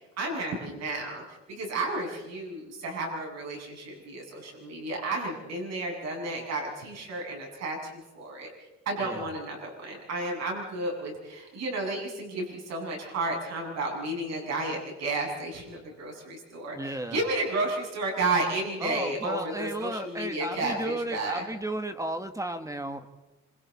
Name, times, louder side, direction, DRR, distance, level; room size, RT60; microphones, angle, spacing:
voice 1, 0.2-8.5 8.9-21.4, right 2 dB, 65° right, 0 dB, 7.1 m, -32 dB
voice 2, 16.7-17.3 18.8-23.1, right 1 dB, 10° right, 8 dB, 1.3 m, -34 dB
27.0 x 27.0 x 4.2 m, 1.1 s
cardioid pair, 115°, 29 cm